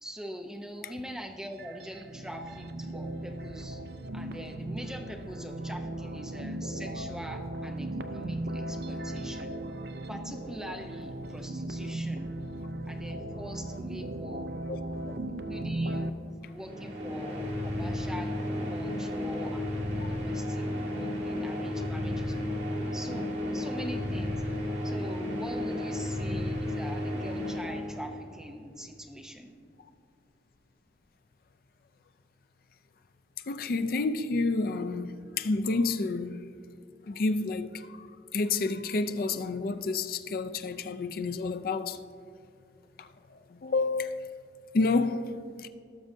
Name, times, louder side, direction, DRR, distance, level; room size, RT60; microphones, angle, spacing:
voice 1, 0.0-3.8 4.1-9.6 10.1-12.3 12.9-14.5 15.3-18.3 18.6-22.7 22.9-24.4 24.8-29.6, equal, 5° right, 0.6 m, -43 dB
sound 1, 1.4-16.1, right 1 dB, 60° right, 0.4 m, -37 dB
sound 2, 16.6-28.4, left 1 dB, 80° right, 2.1 m, -33 dB
voice 2, 33.5-36.4 37.1-37.8 38.3-42.0 43.6-44.5 44.7-45.7, left 3 dB, 55° left, 0.4 m, -29 dB
17.5 x 6.3 x 2.7 m
head